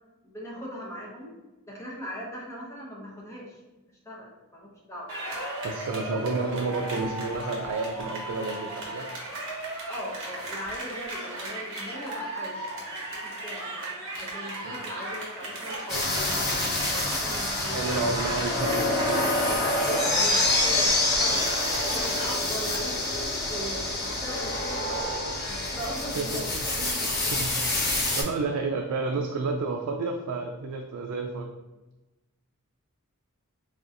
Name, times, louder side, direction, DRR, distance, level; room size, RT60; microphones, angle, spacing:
voice 1, 0.2-1.3 1.7-3.6 4.0-5.1 9.9-13.8 14.2-18.4 19.5-26.8, equal, 15° left, -4 dB, 0.9 m, -40 dB
sound 1, 5.1-22.4, right 1 dB, 60° right, 1.2 m, -36 dB
voice 2, 5.6-9.1 14.6-14.7 17.7-20.1 26.1-27.9 28.2-31.5, right 3 dB, 80° right, 3 dB, 0.4 m, -31 dB
sound 2, 15.9-28.2, left 2 dB, 45° left, 1.2 m, -27 dB
4.2 x 3.8 x 2.5 m, 1.1 s
head